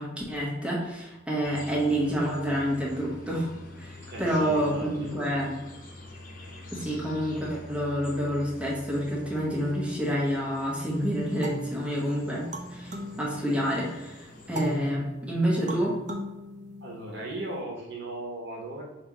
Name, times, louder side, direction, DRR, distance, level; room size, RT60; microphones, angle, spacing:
voice 1, 0.0-3.5 3.8-5.6 6.7-12.5 12.7-16.0, equal, 5° right, -6 dB, 1.1 m, -28 dB
sound 1, 1.4-14.9, left 2 dB, 45° left, 0.8 m, -46 dB
voice 2, 4.0-5.2 16.8-18.8, right 2 dB, 65° right, -1 dB, 1.0 m, -37 dB
sound 2, 11.4-13.9 14.6-17.4, equal, 40° right, 0.5 m, -39 dB
3.3 x 3.0 x 4.7 m, 1.0 s
head